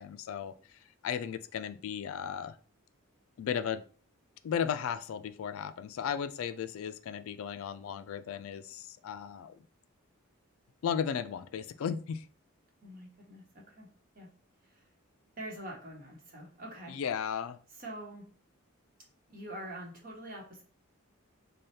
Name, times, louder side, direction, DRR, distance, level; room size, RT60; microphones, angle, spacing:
voice 1, 0.0-2.6 3.4-3.8 4.4-9.6 10.8-12.3 16.9-17.6, left 7 dB, 70° left, 11 dB, 0.3 m, -35 dB
voice 2, 12.8-13.9 14.1-14.3 14.6-14.8 15.4-16.9 17.8-18.3 19.3-20.6, right 1 dB, 40° right, 0 dB, 1.0 m, -45 dB
3.3 x 2.3 x 4.1 m, 0.40 s
head